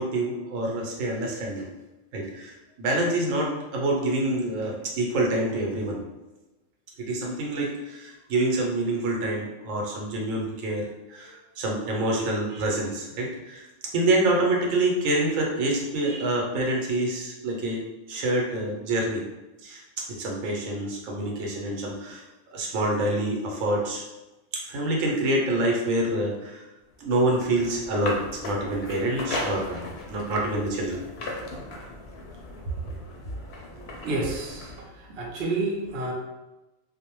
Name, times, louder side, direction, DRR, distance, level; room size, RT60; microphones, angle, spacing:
voice 1, 0.0-1.7 2.1-6.0 7.0-13.7 13.9-19.2 19.6-19.8 20.1-22.2 22.5-24.0 24.6-26.6 27.0-31.0, right 1 dB, 90° right, -1 dB, 1.0 m, -27 dB
sound 1, 26.9-34.8, left 2 dB, 65° left, 0.7 m, -37 dB
voice 2, 34.0-34.7 35.0-36.1, right 2 dB, 60° right, -1 dB, 0.8 m, -29 dB
2.5 x 2.0 x 2.9 m, 1.0 s
omnidirectional pair, 1.3 m